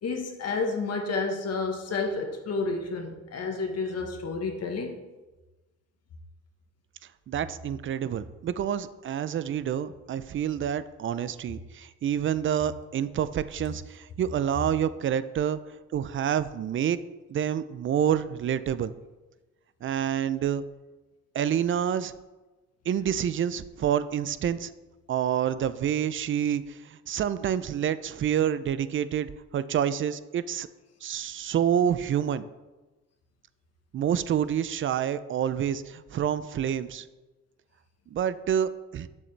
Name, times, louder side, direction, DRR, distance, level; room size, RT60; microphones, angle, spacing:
voice 1, 0.0-5.0, left 3 dB, 55° left, 3 dB, 1.2 m, -30 dB
voice 2, 7.3-15.6 15.9-17.0 17.3-18.9 19.8-20.6 21.3-22.1 22.9-24.7 25.1-29.3 29.5-30.7 31.0-32.4 33.9-37.1 38.1-39.1, right 9 dB, 40° right, 14 dB, 0.4 m, -28 dB
7.7 x 7.0 x 3.3 m, 1.2 s
cardioid pair, 90°, 30 cm